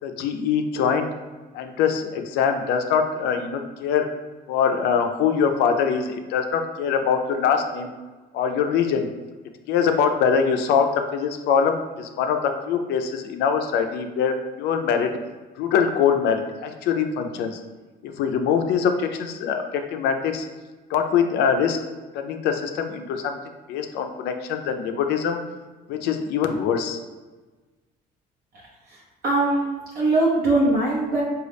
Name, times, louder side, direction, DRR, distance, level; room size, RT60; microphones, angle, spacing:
voice 1, 0.0-1.1 1.5-4.1 4.5-7.9 8.3-9.1 9.7-15.1 15.6-17.6 18.0-20.5 20.9-21.8 22.1-25.4 25.9-27.0, left 7 dB, 80° left, 5 dB, 0.4 m, -23 dB
voice 2, 28.9-29.7 29.9-31.2, right 2 dB, 65° right, -5 dB, 0.8 m, -21 dB
3.7 x 2.3 x 3.3 m, 1.3 s
cardioid pair, 110°, 17 cm